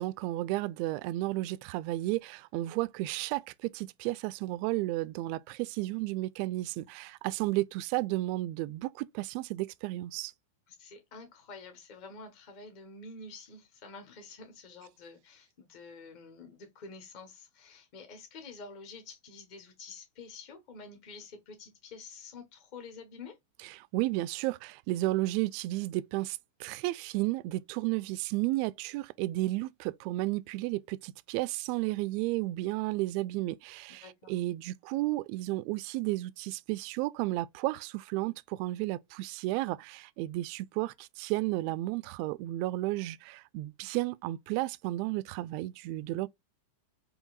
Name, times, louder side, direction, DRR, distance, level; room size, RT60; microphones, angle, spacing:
voice 1, 0.0-10.3 23.8-46.3, right 18 dB, 55° right, 0.3 m, -33 dB
voice 2, 10.7-23.4 34.0-34.3, left 4 dB, 50° left, 1.3 m, -48 dB
4.7 x 2.6 x 2.4 m
hypercardioid pair, 100°, 0 cm